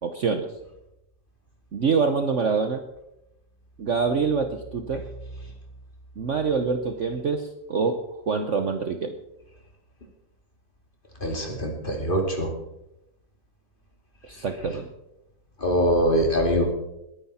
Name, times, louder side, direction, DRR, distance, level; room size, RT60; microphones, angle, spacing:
voice 1, 0.0-0.5 1.7-2.8 3.8-5.0 6.2-8.0 8.3-9.2 14.3-14.9, right 5 dB, 50° right, 7 dB, 1.1 m, -25 dB
voice 2, 11.2-12.5 15.6-16.6, equal, 30° left, 2 dB, 2.8 m, -23 dB
21.0 x 9.7 x 4.3 m, 0.87 s
omnidirectional pair, 1.9 m